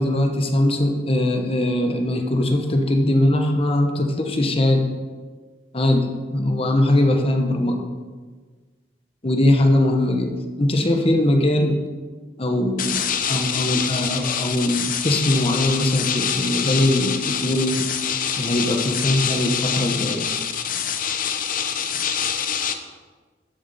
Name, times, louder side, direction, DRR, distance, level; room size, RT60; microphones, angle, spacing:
voice 1, 0.0-4.9 5.7-7.8 9.2-11.8 12.4-13.0 13.3-17.9 18.4-20.3, left 1 dB, 35° left, 4 dB, 1.0 m, -21 dB
sound 1, 12.8-22.7, left 8 dB, 50° left, 0.7 m, -25 dB
12.5 x 6.7 x 4.2 m, 1.4 s
head